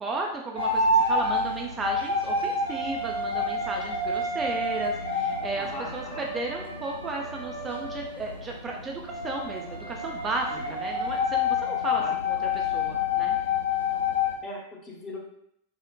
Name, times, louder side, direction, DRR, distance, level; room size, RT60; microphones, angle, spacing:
voice 1, 0.0-5.7 5.9-13.4, right 3 dB, 20° right, 0 dB, 0.3 m, -34 dB
sound 1, 0.6-14.4, left 3 dB, 85° left, 0.5 m, -28 dB
voice 2, 5.5-6.3 10.5-10.8 11.9-12.1 14.4-15.2, left 1 dB, 25° left, -2 dB, 0.7 m, -39 dB
3.7 x 2.1 x 2.2 m, 0.75 s
figure-of-eight pair, 90°, 0 cm